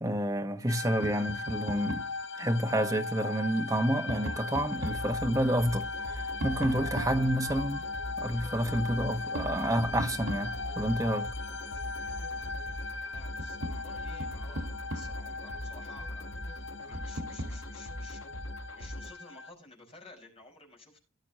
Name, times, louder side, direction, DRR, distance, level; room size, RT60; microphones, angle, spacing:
voice 1, 0.0-2.1 2.4-7.8 8.2-11.3, right 1 dB, 15° right, 1.2 m, -29 dB
sound 1, 0.7-19.5, left 3 dB, 60° left, 1.2 m, -39 dB
Tap, 1.0-2.2 3.6-5.1 6.4-7.8 9.3-10.9 12.7-12.8 13.2-15.4 16.9-17.6, right 1 dB, 85° right, 1.6 m, -39 dB
sound 2, 4.7-19.1, left 1 dB, 90° left, 1.4 m, -42 dB
voice 2, 13.1-18.2 18.7-21.0, left 2 dB, 30° left, 5.6 m, -53 dB
18.5 x 7.1 x 3.0 m
head